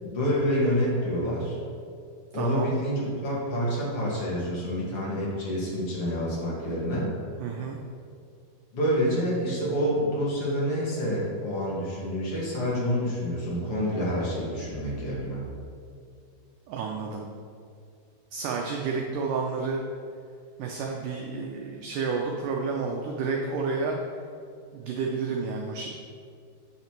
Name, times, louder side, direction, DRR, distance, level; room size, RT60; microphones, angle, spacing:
voice 1, 0.0-1.6 2.3-7.1 8.7-15.4, equal, 45° left, -6 dB, 2.2 m, -27 dB
voice 2, 2.3-2.8 7.4-7.8 16.7-17.2 18.3-19.8 20.6-24.0 24.7-25.9, right 4 dB, 85° right, 1 dB, 1.8 m, -30 dB
8.8 x 5.8 x 4.5 m, 2.3 s
omnidirectional pair, 4.5 m